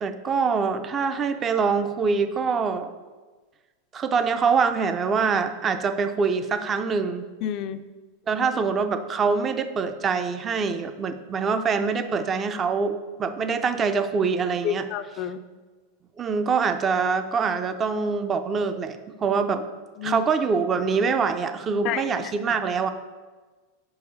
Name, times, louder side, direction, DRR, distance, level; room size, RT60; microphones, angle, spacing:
voice 1, 0.0-2.9 3.9-7.2 8.3-14.9 16.2-19.6 20.0-22.9, right 5 dB, 25° right, 9 dB, 0.4 m, -24 dB
voice 2, 7.4-7.8 14.6-15.4 20.0-20.2 21.8-22.0, left 10 dB, 45° left, 11 dB, 0.4 m, -29 dB
5.2 x 4.7 x 5.3 m, 1.3 s
supercardioid pair, 145°, 0 cm